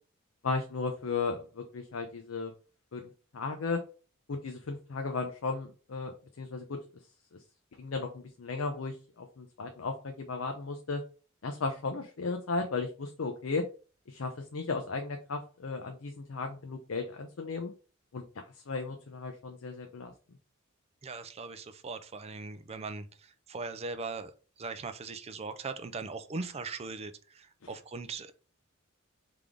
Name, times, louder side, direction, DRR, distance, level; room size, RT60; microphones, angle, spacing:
voice 1, 0.4-2.5 2.9-3.8 4.3-6.8 7.3-7.4 7.8-11.0 11.4-13.6 14.1-17.7 18.1-20.1 27.6-27.7, left 4 dB, 70° left, 4 dB, 0.6 m, -35 dB
voice 2, 21.0-24.3 24.6-28.3, right 4 dB, 30° right, 10 dB, 0.4 m, -40 dB
3.5 x 3.4 x 3.7 m, 0.38 s
head